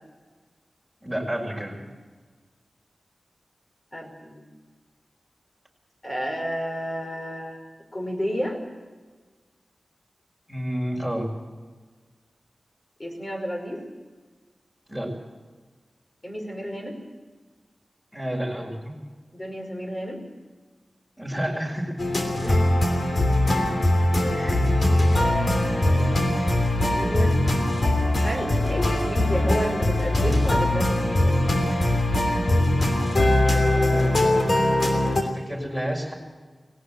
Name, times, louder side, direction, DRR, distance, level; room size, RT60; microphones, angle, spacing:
voice 1, 1.0-1.8 10.5-11.3 14.9-15.1 18.1-18.9 21.2-21.9 23.0-23.2 24.3-24.7 33.7-34.6 35.1-36.1, equal, 5° left, 1 dB, 6.2 m, -30 dB
voice 2, 3.9-4.5 6.0-7.6 7.9-8.6 13.0-13.8 16.2-17.0 19.3-20.2 22.4-22.7 24.2-24.6 25.1-26.3 26.7-27.4 28.2-31.5, equal, 25° left, 2 dB, 5.4 m, -31 dB
sound 1, 22.0-35.2, left 1 dB, 50° left, 3.1 m, -21 dB
19.5 x 18.0 x 7.9 m, 1.4 s
wide cardioid pair, 85°, 0 cm